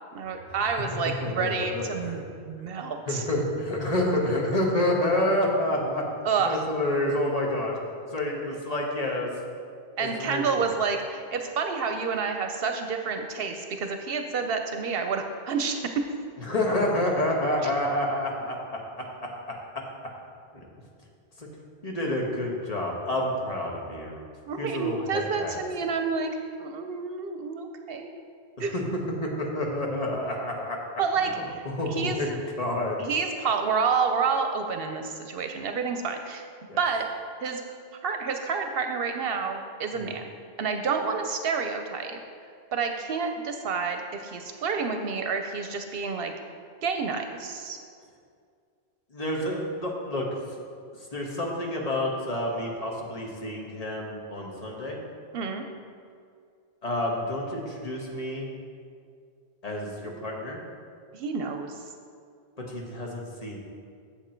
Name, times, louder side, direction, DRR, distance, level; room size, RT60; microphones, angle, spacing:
voice 1, 0.1-3.3 6.2-6.6 10.0-15.8 17.6-17.7 24.5-26.3 26.6-28.1 28.6-28.7 31.0-32.2 33.0-36.4 36.8-37.0 37.4-37.6 38.0-40.2 40.6-42.2 42.7-46.3 46.8-47.8 55.3-55.6 61.1-61.8, right 5 dB, 70° right, 5 dB, 0.8 m, -29 dB
voice 2, 1.2-2.3 3.1-6.0 6.4-7.8 8.1-9.3 10.0-10.7 16.4-18.8 20.5-20.7 21.4-21.5 21.8-24.2 24.6-25.6 28.7-28.8 29.2-30.8 31.3-33.0 36.7-36.8 39.9-40.1 49.1-50.3 51.1-55.0 56.8-58.6 59.6-60.6 62.6-63.6, left 1 dB, 40° left, -1 dB, 1.3 m, -29 dB
8.2 x 7.2 x 4.4 m, 2.3 s
omnidirectional pair, 1.0 m